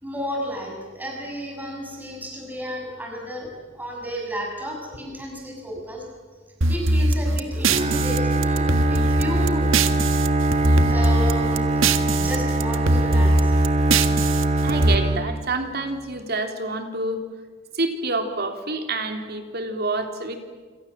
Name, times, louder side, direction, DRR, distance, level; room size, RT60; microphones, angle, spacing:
voice 1, 0.0-3.5 3.7-6.0 6.7-9.7 10.7-11.7 12.0-13.5, equal, 10° right, 0 dB, 6.5 m, -32 dB
sound 1, 6.6-10.3 10.5-12.4 12.6-14.9, right 2 dB, 70° right, 1.6 m, -21 dB
Bowed string instrument, 7.6-15.9, right 2 dB, 35° right, 1.8 m, -23 dB
voice 2, 14.6-17.2 17.7-20.4, right 2 dB, 50° right, 6 dB, 3.5 m, -27 dB
28.0 x 27.0 x 7.5 m, 1.4 s
head